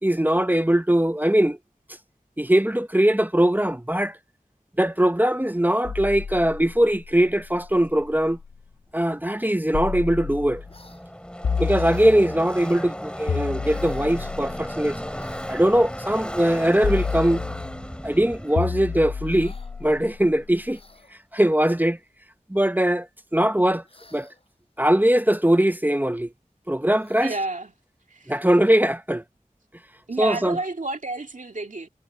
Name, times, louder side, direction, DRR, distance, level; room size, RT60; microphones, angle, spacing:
voice 1, 0.0-1.6 2.4-4.2 4.8-8.4 8.9-10.6 11.6-14.9 15.5-17.4 18.0-19.5 19.8-20.8 21.3-22.0 22.5-23.1 23.3-23.8 24.1-24.3 24.8-26.3 26.7-27.3 28.3-29.2 30.2-30.6, right 1 dB, 10° right, 0.8 m, -21 dB
sound 1, 5.8-8.6 9.7-10.8 11.4-12.6 13.3-15.5 16.8-17.9 18.6-20.7, left 5 dB, 70° left, 0.5 m, -31 dB
Car passing by / Race car auto racing, 9.6-9.7 9.9-20.5, equal, 5° left, 3.6 m, -36 dB
sound 2, 10.7-11.1 11.9-12.3 13.6-14.2 15.2-15.6 16.6-17.2 19.2-19.7 20.6-21.2 23.8-24.5 26.9-27.5, left 2 dB, 40° left, 7.7 m, -53 dB
voice 2, 27.2-27.7 28.1-28.3 30.1-31.9, right 2 dB, 60° right, 2.1 m, -30 dB
wide cardioid pair, 55°, 15 cm